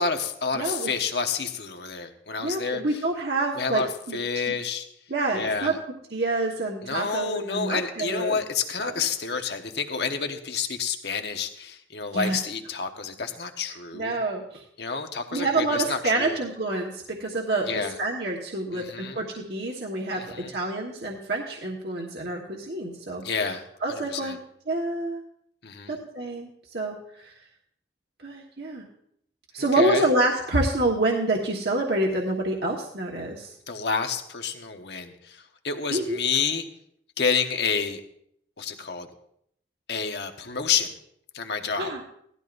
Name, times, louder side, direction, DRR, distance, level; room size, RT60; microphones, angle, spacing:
voice 1, 0.0-2.8 3.6-4.9 5.3-5.8 6.8-14.2 14.8-16.4 17.7-18.0 18.7-19.2 20.1-20.5 23.2-23.6 23.9-24.4 25.6-25.9 29.6-30.0 33.7-35.1 35.6-36.6 37.2-38.0 38.6-39.1 39.9-40.9 41.3-41.9, left 5 dB, 75° left, 5 dB, 1.2 m, -29 dB
voice 2, 0.5-0.9 2.4-4.4 5.1-5.7 6.1-8.4 8.8-8.9 12.1-12.4 13.9-14.6 15.3-24.4 24.7-25.2 25.9-27.3 28.2-28.8 29.5-33.5 35.9-36.2 41.8-42.0, right 2 dB, 70° right, -1 dB, 1.4 m, -27 dB
17.5 x 13.0 x 2.6 m, 0.70 s
head